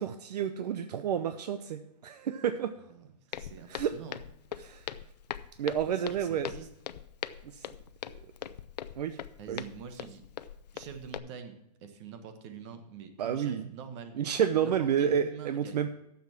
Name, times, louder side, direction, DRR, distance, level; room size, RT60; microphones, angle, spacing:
voice 1, 0.0-2.7 3.7-3.9 4.6-4.9 5.6-6.5 7.5-7.6 9.0-9.2 9.5-9.6 13.2-13.6 14.2-15.9, right 8 dB, 75° right, 9 dB, 0.7 m, -30 dB
voice 2, 2.9-4.2 5.9-6.7 9.4-10.2 10.7-14.2 14.6-15.9, right 6 dB, 45° right, 8 dB, 1.4 m, -45 dB
Walk footsteps, 3.3-11.2, left 10 dB, 80° left, 0.6 m, -42 dB
9.3 x 7.2 x 5.9 m, 0.84 s
hypercardioid pair, 145°, 21 cm